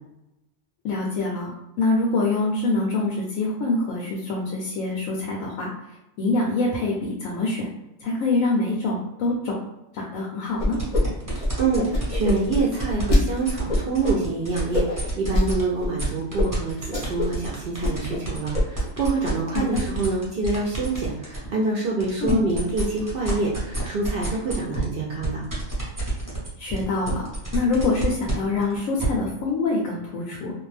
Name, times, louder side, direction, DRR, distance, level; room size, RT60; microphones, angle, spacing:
voice 1, 0.8-1.5 1.8-5.7 6.2-7.7 8.0-9.6 9.9-10.8 19.5-19.8 22.2-22.4 26.6-27.3 27.5-30.5, left 3 dB, 85° left, -2 dB, 1.0 m, -25 dB
sound 1, 10.6-11.0 11.3-13.2 13.7-14.1 14.7-15.5 15.8-15.9 16.4-16.5 16.8-17.4 17.7-18.2 18.5-18.9, left 1 dB, 40° left, 0.5 m, -23 dB
sound 2, 10.7-15.6 16.0-21.5 21.9-29.1, right 1 dB, 20° right, 0.7 m, -31 dB
voice 2, 11.3-25.4, right 3 dB, 60° right, -3 dB, 0.6 m, -26 dB
2.5 x 2.2 x 3.2 m, 0.90 s
omnidirectional pair, 1.4 m